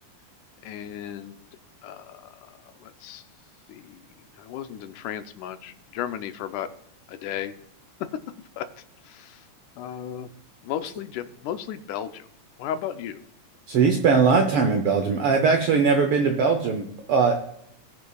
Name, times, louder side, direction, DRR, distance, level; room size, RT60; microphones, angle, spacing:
voice 1, 0.6-1.5 1.8-2.3 2.8-3.2 3.7-4.1 4.4-6.7 7.1-7.5 8.6-8.7 9.1-9.4 9.8-10.3 10.6-12.2 12.6-13.2, left 10 dB, 90° left, 10 dB, 2.2 m, -34 dB
voice 2, 13.7-17.4, right 5 dB, 75° right, 5 dB, 1.3 m, -20 dB
19.0 x 6.4 x 2.3 m, 0.73 s
omnidirectional pair, 3.4 m